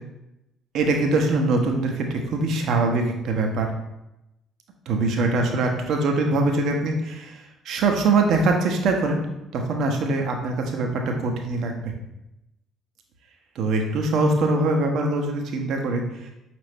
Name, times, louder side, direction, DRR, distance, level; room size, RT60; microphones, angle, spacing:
voice 1, 0.7-3.7 4.9-9.2 9.5-11.9 13.6-16.3, right 3 dB, 55° right, 3 dB, 0.6 m, -23 dB
5.4 x 2.5 x 3.4 m, 0.90 s
figure-of-eight pair, 50°, 0 cm